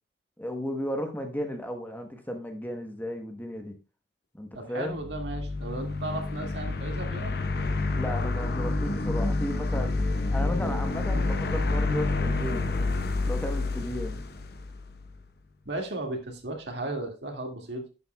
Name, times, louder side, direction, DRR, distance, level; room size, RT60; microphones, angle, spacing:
voice 1, 0.4-3.7 4.3-5.0 8.0-10.0 10.3-12.7 13.2-14.2, equal, 10° left, 4 dB, 1.0 m, -34 dB
voice 2, 4.5-7.3 15.7-17.8, right 2 dB, 65° right, 3 dB, 1.9 m, -35 dB
sound 1, 4.9-15.1, left 3 dB, 60° left, 0.8 m, -29 dB
10.5 x 8.5 x 2.2 m, 0.30 s
head